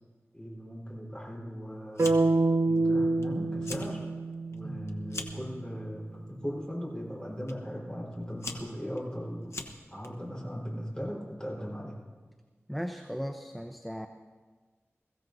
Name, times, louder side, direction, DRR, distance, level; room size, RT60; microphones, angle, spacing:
voice 1, 0.3-2.1 2.7-4.1 4.5-9.5 9.9-12.0, equal, 15° left, -3 dB, 4.4 m, -38 dB
Fire, 1.9-2.4 2.8-3.2 3.5-3.9 4.3-5.5 6.3-6.6 7.5-7.6 8.1-10.1, left 2 dB, 65° left, 1.0 m, -41 dB
sound 1, 2.0-6.0, right 3 dB, 70° right, 0.5 m, -28 dB
voice 2, 12.7-14.1, equal, ahead, 6 dB, 0.7 m, -37 dB
21.5 x 15.5 x 2.7 m, 1.4 s
wide cardioid pair, 50°, 5 cm